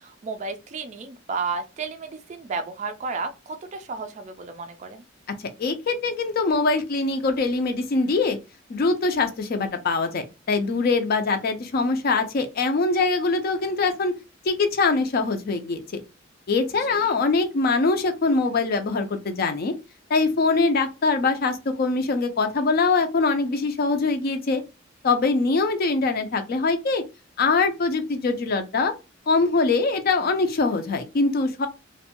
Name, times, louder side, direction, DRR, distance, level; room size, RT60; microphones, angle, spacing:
voice 1, 0.0-5.0 16.9-17.0, right 4 dB, 35° right, 0.3 m, -32 dB
voice 2, 5.6-8.4 8.7-14.1 14.4-16.0 16.5-19.8 20.1-24.6 25.0-27.0 27.4-28.9 29.3-31.7, left 3 dB, 50° left, 0.4 m, -23 dB
2.5 x 2.2 x 2.8 m
head